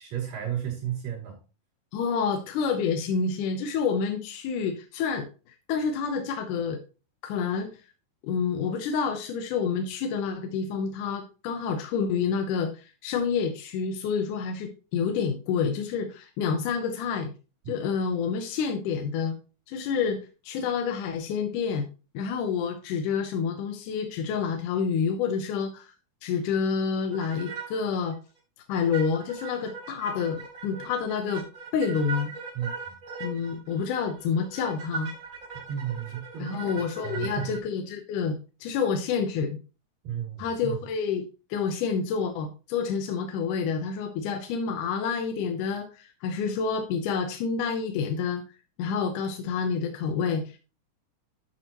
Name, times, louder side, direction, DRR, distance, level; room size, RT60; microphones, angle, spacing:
voice 1, 0.0-1.4 32.5-32.9 35.7-37.6 40.0-40.8, right 9 dB, 90° right, -7 dB, 4.7 m, -33 dB
voice 2, 1.9-6.8 7.2-7.7 8.2-17.3 17.7-19.4 19.7-21.9 22.1-25.9 26.2-28.2 28.7-31.4 31.7-32.3 33.2-35.1 36.4-38.4 38.6-39.6 40.4-48.4 48.8-50.6, left 6 dB, 75° left, 5 dB, 2.2 m, -28 dB
sound 1, 27.1-27.9 28.1-28.2 28.7-37.6, right 5 dB, 35° right, 3.8 m, -39 dB
11.0 x 6.6 x 2.9 m, 0.33 s
omnidirectional pair, 3.8 m